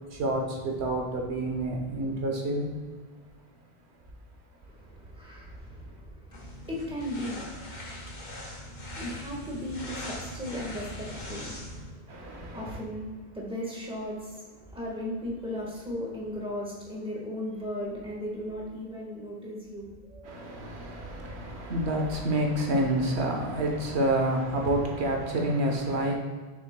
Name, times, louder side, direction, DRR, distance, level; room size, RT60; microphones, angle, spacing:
voice 1, 0.1-2.6 12.1-12.8 20.2-26.1, right 1 dB, 90° right, 1 dB, 1.2 m, -28 dB
voice 2, 4.7-20.5, left 1 dB, 5° right, -4 dB, 1.4 m, -37 dB
sound 1, 6.3-11.9, left 1 dB, 45° left, 1.2 m, -40 dB
6.9 x 6.1 x 2.2 m, 1.4 s
omnidirectional pair, 1.1 m